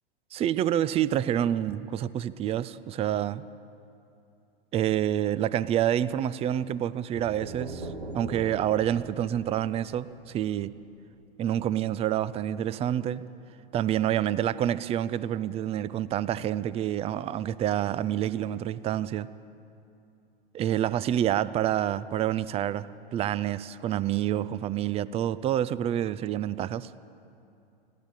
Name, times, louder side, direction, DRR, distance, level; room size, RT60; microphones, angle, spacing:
voice 1, 0.3-3.5 4.7-7.9 8.1-10.8 11.4-13.2 13.7-19.3 20.5-26.9, right 11 dB, 20° right, 0.5 m, -28 dB
sound 1, 7.1-10.9, right 2 dB, 85° right, 2.0 m, -41 dB
20.0 x 14.5 x 9.0 m
hypercardioid pair, 100°, 30 cm